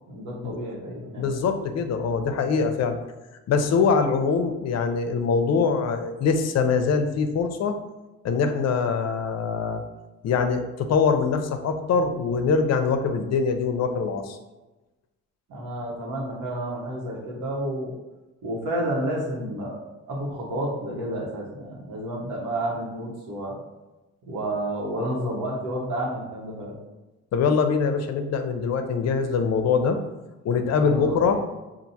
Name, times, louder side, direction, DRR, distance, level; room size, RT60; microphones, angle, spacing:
voice 1, 0.1-1.3 15.5-17.9 18.4-23.6 24.2-26.7 30.8-31.4, right 1 dB, 75° right, -2 dB, 1.2 m, -30 dB
voice 2, 1.2-3.0 3.5-7.8 8.2-9.8 10.2-14.4 27.3-30.0 30.4-31.4, left 5 dB, 60° left, 7 dB, 0.6 m, -23 dB
5.8 x 2.5 x 2.7 m, 1.1 s
cardioid pair, 90°, 30 cm